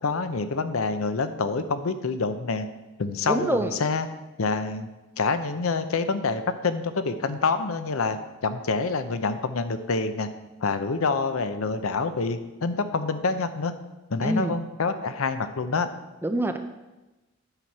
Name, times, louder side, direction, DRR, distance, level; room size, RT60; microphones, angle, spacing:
voice 1, 0.0-2.7 3.0-4.1 4.4-4.9 5.2-10.3 10.6-13.7 14.1-15.9, left 4 dB, 80° left, 10 dB, 0.6 m, -27 dB
voice 2, 3.3-3.7 14.2-14.5 16.2-16.6, right 1 dB, 10° right, 7 dB, 0.4 m, -25 dB
8.9 x 5.8 x 4.6 m, 1.1 s
head